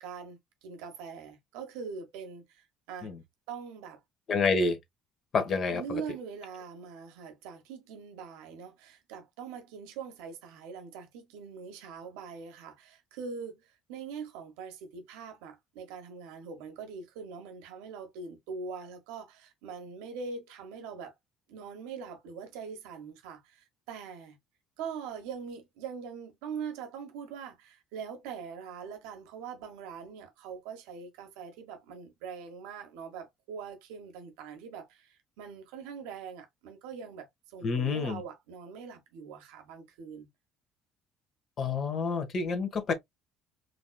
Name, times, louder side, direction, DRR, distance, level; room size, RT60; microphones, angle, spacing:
voice 1, 0.0-3.1 3.5-4.0 5.7-21.1 21.5-24.4 24.8-40.3, right 6 dB, 70° right, 1.1 m, -43 dB
voice 2, 4.3-4.8 5.3-6.0 37.6-38.2 41.6-42.9, left 4 dB, 45° left, 1.2 m, -28 dB
4.9 x 2.9 x 2.2 m
hypercardioid pair, 55°, 0 cm